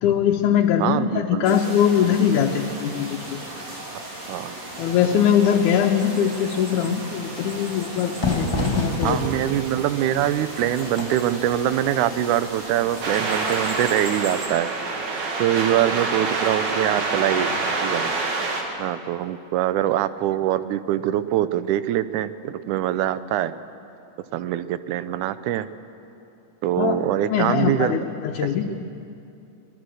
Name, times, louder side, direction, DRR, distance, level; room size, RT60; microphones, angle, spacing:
voice 1, 0.0-3.4 4.8-9.3 26.8-27.0 27.3-28.7, left 8 dB, 80° left, 1 dB, 2.4 m, -21 dB
voice 2, 0.8-1.6 4.3-4.5 9.0-14.7 15.4-17.5 17.8-18.1 18.8-23.5 24.3-25.7 26.6-27.9 28.7-28.8, right 12 dB, 80° right, 13 dB, 2.1 m, -23 dB
sound 1, 1.4-14.5, right 1 dB, 45° right, 4.0 m, -36 dB
Fire / Fireworks, 8.2-13.7, left 1 dB, 25° left, 0.6 m, -30 dB
sound 2, 13.0-18.6, right 3 dB, 60° right, 3.2 m, -26 dB
23.5 x 20.0 x 6.4 m, 2.7 s
omnidirectional pair, 3.6 m